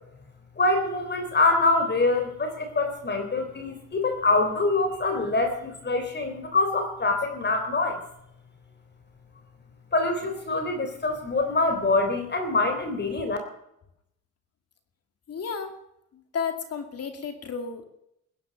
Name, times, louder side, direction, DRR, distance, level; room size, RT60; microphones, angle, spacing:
voice 1, 0.6-8.0 9.9-13.4, left 3 dB, 35° left, 6 dB, 3.5 m, -25 dB
voice 2, 15.3-15.7 16.3-17.9, left 6 dB, 55° left, 7 dB, 2.4 m, -32 dB
21.0 x 10.0 x 5.3 m, 0.80 s
cardioid pair, 90°, 30 cm